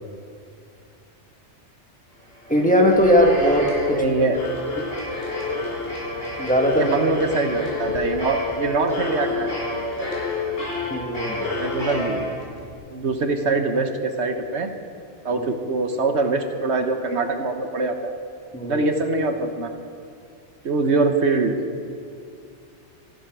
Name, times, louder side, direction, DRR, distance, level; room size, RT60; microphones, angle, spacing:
sound 1, 2.3-12.7, left 2 dB, 60° left, 4.8 m, -29 dB
voice 1, 2.5-4.0 6.4-6.9 10.9-11.5 15.3-15.5 18.5-18.8, equal, 5° left, 0 dB, 1.6 m, -19 dB
voice 2, 3.9-4.4 6.7-9.6 11.6-12.3 12.9-14.7 15.2-18.1 18.6-19.7 20.6-21.6, right 3 dB, 70° right, 6 dB, 1.4 m, -23 dB
14.5 x 13.0 x 6.1 m, 2.5 s
omnidirectional pair, 1.2 m